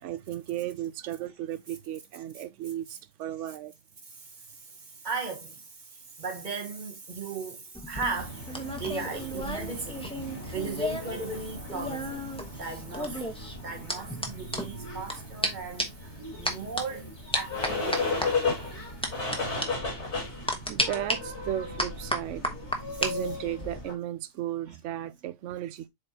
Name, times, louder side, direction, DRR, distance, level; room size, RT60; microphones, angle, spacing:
voice 1, 0.0-3.7 20.7-22.4 23.0-25.9, right 12 dB, 70° right, 0.9 m, -35 dB
voice 2, 5.0-5.6 6.2-8.4 8.8-10.1 10.5-12.2 12.5-13.2 13.6-15.9 16.4-17.1 17.3-18.8 22.9-23.0, right 4 dB, 35° right, 1.6 m, -36 dB
sound 1, 7.7-11.2 11.4-15.1 15.4-15.5 15.8-16.1 16.5-16.8 17.3-18.3 19.0-19.4 19.6-19.7 20.5-21.2 21.8-23.1 23.4-23.8, equal, 5° left, 1.1 m, -32 dB
sound 2, 8.2-23.9, left 3 dB, 60° left, 2.8 m, -36 dB
7.6 x 4.3 x 2.8 m
omnidirectional pair, 1.3 m